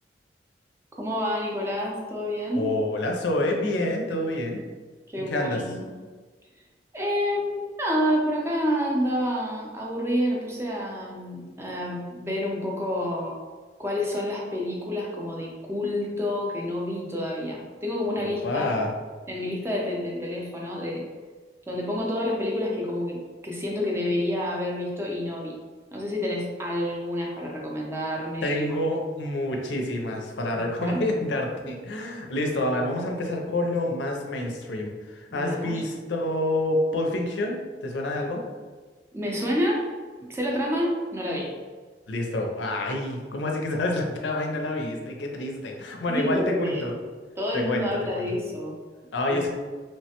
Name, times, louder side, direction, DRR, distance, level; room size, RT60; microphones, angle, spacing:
voice 1, 1.0-2.7 5.1-5.9 6.9-13.4 13.8-18.7 19.3-21.0 21.7-25.6 25.9-28.8 30.8-31.0 35.3-35.8 39.1-39.8 40.2-41.5 46.1-46.9 47.4-48.8 49.3-49.4, left 1 dB, 15° right, -2 dB, 0.5 m, -28 dB
voice 2, 2.5-4.6 5.3-5.6 18.2-18.9 28.4-38.4 42.1-46.9 47.5-48.3 49.1-49.5, left 1 dB, 85° left, 1 dB, 0.5 m, -28 dB
3.1 x 2.1 x 2.8 m, 1.4 s
head